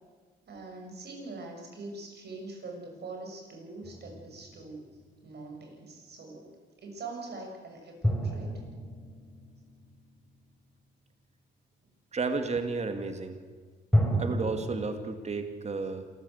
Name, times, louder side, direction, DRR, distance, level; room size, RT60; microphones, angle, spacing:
voice 1, 0.5-4.9 5.2-8.6, right 3 dB, 55° right, 2 dB, 6.7 m, -43 dB
sound 1, 3.8-5.2 8.0-10.6 13.9-14.9, equal, ahead, 5.6 m, -31 dB
voice 2, 12.1-13.4 14.2-16.1, right 4 dB, 35° right, 8 dB, 2.4 m, -32 dB
27.0 x 14.5 x 8.2 m, 1.5 s
cardioid pair, 90°, 20 cm